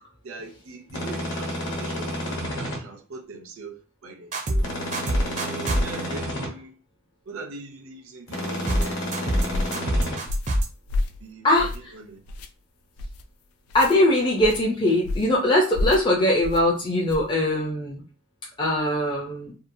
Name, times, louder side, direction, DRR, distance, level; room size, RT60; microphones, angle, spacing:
voice 1, 0.2-4.7 5.4-6.7 7.3-9.0 11.2-11.7 11.9-12.2, right 3 dB, 80° right, 0.6 m, -41 dB
sound 1, 0.9-2.8 4.6-6.5 8.3-10.2, equal, 60° left, 1.0 m, -30 dB
sound 2, 4.3-4.6 4.9-5.8 8.7-8.9 9.1-9.5 9.7-10.7, right 1 dB, 35° right, 0.4 m, -23 dB
sound 3, 9.5-9.8 10.3-10.6 10.9-11.2 11.6-11.9 12.3-12.5 13.0-13.2 13.7-14.0 14.4-14.6 15.0-15.4 15.7-16.0 16.4-16.6 17.1-17.3, left 2 dB, 90° left, 0.3 m, -29 dB
voice 2, 11.4-11.9 13.7-18.0 18.6-19.5, left 1 dB, 20° left, 0.4 m, -21 dB
2.7 x 2.2 x 2.6 m
head